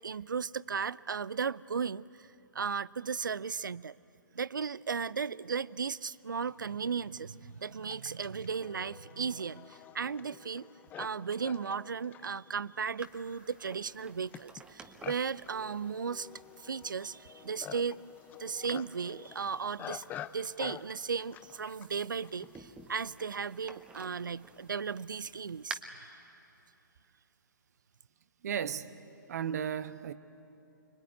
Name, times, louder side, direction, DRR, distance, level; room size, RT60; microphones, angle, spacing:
voice 1, 0.0-2.3 2.5-3.9 4.3-10.7 11.0-16.3 16.6-18.0 18.4-20.0 20.3-25.8, right 6 dB, 75° right, 0.5 m, -35 dB
Livestock farm animals working animals, 5.9-6.0 6.7-22.7, left 10 dB, 15° left, 0.5 m, -49 dB
sound 1, 13.0-25.7, right 4 dB, 10° right, 1.2 m, -52 dB
voice 2, 28.4-29.0 29.3-30.1, right 8 dB, 50° right, 0.9 m, -35 dB
25.0 x 22.5 x 9.5 m
figure-of-eight pair, 125°, 11 cm